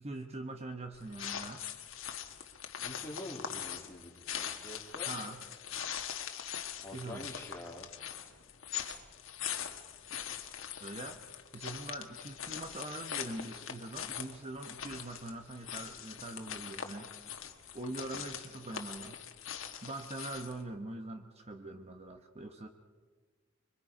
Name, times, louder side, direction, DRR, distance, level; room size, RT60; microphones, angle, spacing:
voice 1, 0.0-1.7 5.0-5.4 6.9-7.3 10.8-11.2 11.5-17.3 17.7-19.2 19.8-22.7, right 2 dB, 35° right, 5 dB, 1.0 m, -43 dB
sound 1, 0.9-20.6, left 9 dB, 85° left, 1.4 m, -42 dB
voice 2, 2.8-5.1 6.8-7.9 18.1-18.3, left 1 dB, 15° left, -1 dB, 3.0 m, -46 dB
26.0 x 23.0 x 5.0 m, 1.4 s
head